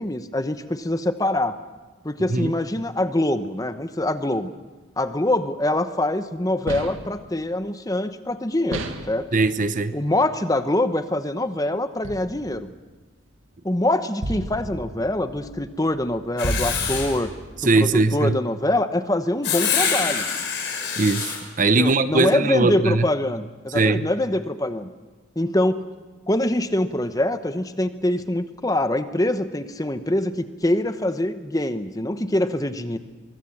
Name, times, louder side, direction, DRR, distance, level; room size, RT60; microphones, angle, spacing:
voice 1, 0.0-1.6 2.0-4.5 5.0-9.3 9.9-12.7 13.6-17.3 17.8-20.3 21.7-24.9 25.4-25.8 26.3-33.0, left 1 dB, 20° left, 1.0 m, -24 dB
sound 1, 6.7-7.2 8.7-9.2 12.0-12.7 14.2-17.6, right 1 dB, 85° right, 2.0 m, -33 dB
voice 2, 9.3-10.0 17.6-18.4 21.0-23.0 23.7-24.1, right 3 dB, 40° right, 0.8 m, -20 dB
Writing, 16.4-17.2 19.4-21.4, left 6 dB, 55° left, 5.4 m, -25 dB
23.5 x 23.5 x 7.3 m
head